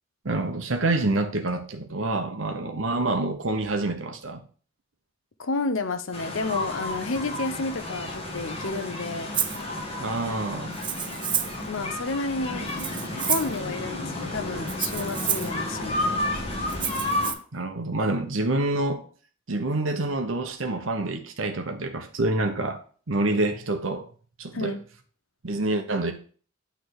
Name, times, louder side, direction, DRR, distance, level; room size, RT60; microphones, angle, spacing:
voice 1, 0.2-4.4 10.0-10.8 17.5-19.0 19.5-24.1 24.4-24.8 25.4-26.1, right 2 dB, 90° right, 1.0 m, -27 dB
voice 2, 5.4-9.3 11.7-12.7 13.2-16.3 24.5-24.8, left 3 dB, 85° left, 0.8 m, -31 dB
sound 1, 6.1-17.3, left 1 dB, 30° left, 1.6 m, -32 dB
Rattle (instrument), 9.3-9.6 10.7-11.6 12.7-13.6 14.7-15.5 16.7-17.3, right 8 dB, 25° right, 0.6 m, -29 dB
9.2 x 3.5 x 6.4 m
head